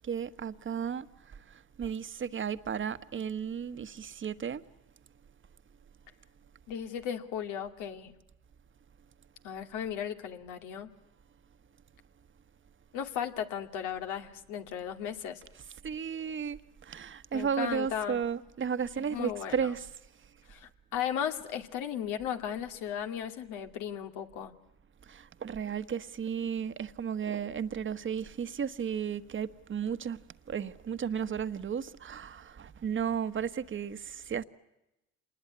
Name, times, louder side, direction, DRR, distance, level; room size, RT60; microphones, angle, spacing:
voice 1, 0.0-1.1 1.5-4.6 15.5-19.9 25.1-30.2 30.5-34.4, right 7 dB, 40° right, 1.4 m, -34 dB
voice 2, 6.7-8.1 9.4-10.9 12.9-15.4 17.3-18.2 19.0-19.5 20.5-24.5, left 9 dB, 80° left, 2.4 m, -36 dB
27.0 x 20.5 x 9.7 m
supercardioid pair, 70°, 30 cm